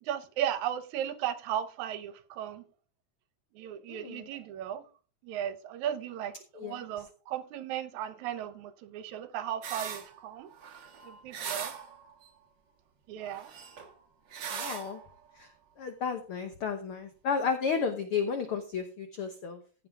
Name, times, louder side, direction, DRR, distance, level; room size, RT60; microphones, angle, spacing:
voice 1, 0.0-2.6 3.6-4.8 5.2-10.5 11.0-11.7 13.1-13.5, right 10 dB, 80° right, 2.2 m, -36 dB
voice 2, 3.9-4.3 6.6-6.8 14.5-15.0 15.3-15.5 15.8-19.6, left 6 dB, 60° left, 1.6 m, -32 dB
sound 1, 9.6-10.2 10.5-12.3 13.2-14.0 14.3-15.1, right 7 dB, 50° right, 1.5 m, -40 dB
15.5 x 7.4 x 3.6 m
omnidirectional pair, 3.4 m